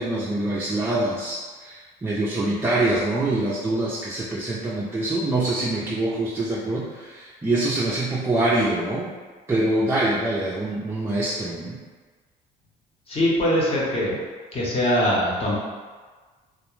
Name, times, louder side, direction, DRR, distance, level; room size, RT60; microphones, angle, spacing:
voice 1, 0.0-9.1 9.5-11.8, right 2 dB, 15° right, -7 dB, 0.3 m, -25 dB
voice 2, 13.1-14.2 14.5-15.5, equal, 35° left, -5 dB, 0.8 m, -22 dB
2.3 x 2.1 x 3.0 m, 1.4 s
cardioid pair, 110°, 17 cm